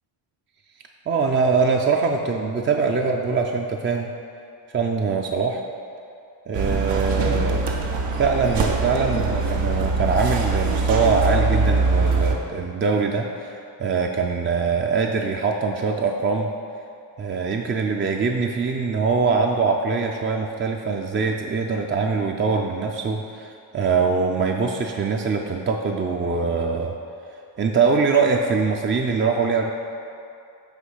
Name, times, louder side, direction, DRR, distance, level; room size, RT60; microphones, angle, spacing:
voice 1, 1.1-4.1 4.7-5.6 6.5-7.6 8.2-16.5 17.2-27.0 27.6-29.7, right 4 dB, 25° right, 2 dB, 0.4 m, -23 dB
sound 1, 6.5-12.3, right 3 dB, 85° right, 0.9 m, -22 dB
8.2 x 3.0 x 5.5 m, 2.5 s
cardioid pair, 75°, 50 cm